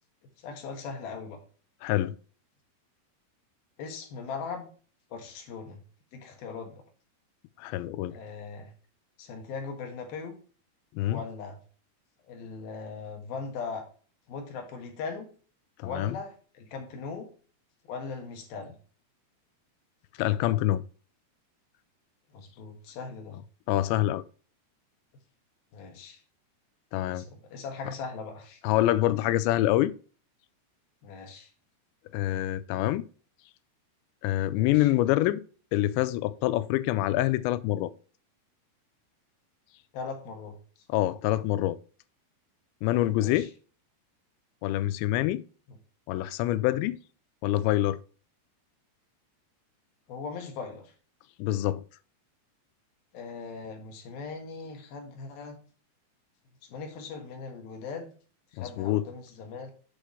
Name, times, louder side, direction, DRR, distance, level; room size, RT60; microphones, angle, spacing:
voice 1, 0.4-1.4 3.8-4.7 5.1-5.8 6.1-6.8 8.1-8.7 9.2-10.4 11.1-11.6 12.3-13.8 14.3-15.3 15.8-17.3 17.8-18.8 22.3-23.4 25.7-26.2 27.1-28.6 31.0-31.5 34.5-34.9 39.9-40.6 43.1-43.5 50.1-50.9 53.1-55.6 56.7-58.1 58.5-59.7, left 5 dB, 65° left, 3.2 m, -39 dB
voice 2, 1.8-2.2 7.6-8.2 11.0-11.2 15.8-16.2 20.2-20.8 23.7-24.2 26.9-27.3 28.6-29.9 32.1-33.0 34.2-35.4 35.7-37.9 40.9-41.8 42.8-43.5 44.6-45.4 46.1-47.0 47.4-48.0 51.4-51.8 58.6-59.0, left 15 dB, 90° left, 2.8 m, -26 dB
8.4 x 6.3 x 3.1 m
omnidirectional pair, 5.0 m